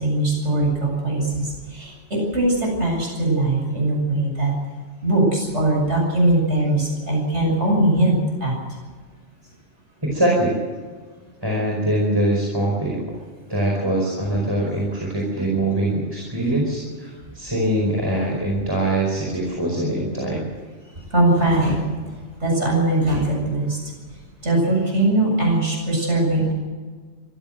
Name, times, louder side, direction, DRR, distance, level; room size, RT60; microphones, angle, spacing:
voice 1, 0.0-4.5 5.0-8.6 21.1-21.9 22.4-23.8 24.4-26.5, right 2 dB, 75° right, 0 dB, 7.9 m, -20 dB
voice 2, 10.0-10.5 11.4-13.0 13.5-20.5, right 1 dB, 20° right, -2 dB, 5.2 m, -23 dB
24.5 x 15.5 x 7.7 m, 1.5 s
omnidirectional pair, 1.2 m